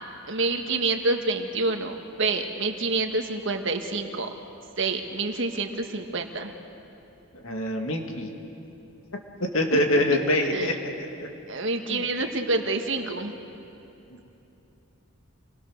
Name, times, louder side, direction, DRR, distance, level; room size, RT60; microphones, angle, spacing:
voice 1, 0.3-4.3 4.8-6.5 9.7-9.8 10.1-10.2 10.5-10.7 11.5-13.3, right 3 dB, 55° right, 5 dB, 1.6 m, -27 dB
voice 2, 7.4-8.3 9.4-10.7 11.0-11.1 11.9-12.0, left 1 dB, 65° left, 3 dB, 2.4 m, -24 dB
28.5 x 21.0 x 6.6 m, 2.9 s
head